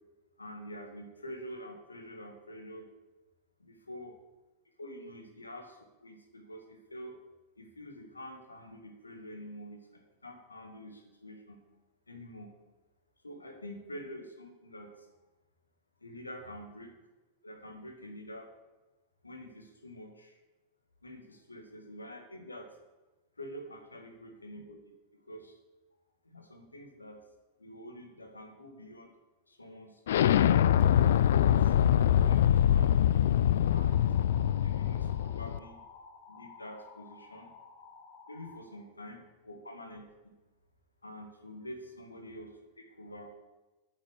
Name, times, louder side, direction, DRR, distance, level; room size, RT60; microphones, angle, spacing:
voice 1, 0.4-2.9 3.6-4.1 4.8-7.2 7.6-11.6 12.1-12.5 13.2-15.1 16.0-16.9 17.4-18.6 19.2-20.4 21.0-22.7 23.4-24.8 25.2-25.6 26.2-27.2 27.6-29.1 29.5-30.8 31.4-34.0 34.6-35.8 36.3-37.5 38.3-40.0 41.0-42.5 42.8-43.3, equal, 80° left, 3 dB, 1.8 m, -47 dB
Explosion, 30.1-35.6, left 10 dB, 60° left, 0.3 m, -24 dB
sound 1, 33.6-38.6, left 5 dB, 35° left, 2.3 m, -53 dB
8.6 x 7.1 x 7.3 m, 1.1 s
figure-of-eight pair, 90°, 0 cm